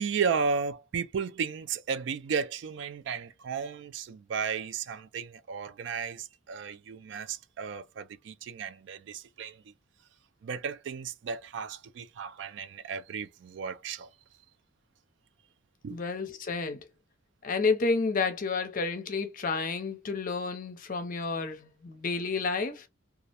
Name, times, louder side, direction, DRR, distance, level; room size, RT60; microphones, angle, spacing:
voice 1, 0.0-9.7 10.4-14.1 15.8-16.0, right 6 dB, 70° right, 0.3 m, -34 dB
voice 2, 15.9-16.8 17.4-22.9, left 4 dB, 45° left, 0.5 m, -30 dB
2.4 x 2.0 x 2.8 m
head